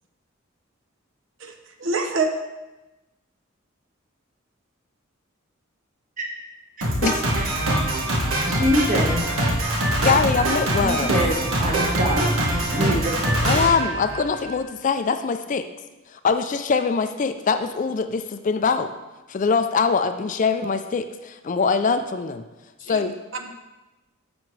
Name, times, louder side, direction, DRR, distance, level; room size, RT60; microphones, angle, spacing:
voice 1, 1.8-2.3 22.8-23.0 23.3-23.5, right 3 dB, 65° right, 5 dB, 0.7 m, -25 dB
Drum kit, 6.8-14.6, right 1 dB, 90° right, 1.4 m, -23 dB
voice 2, 8.5-9.2 10.8-11.3 11.6-12.4 12.7-13.2, equal, 40° right, 0 dB, 1.3 m, -24 dB
voice 3, 10.0-11.1 13.4-15.7 16.1-18.9 19.3-22.4 22.8-23.1, left 5 dB, 40° left, 9 dB, 0.3 m, -23 dB
9.1 x 6.2 x 3.2 m, 1.1 s
head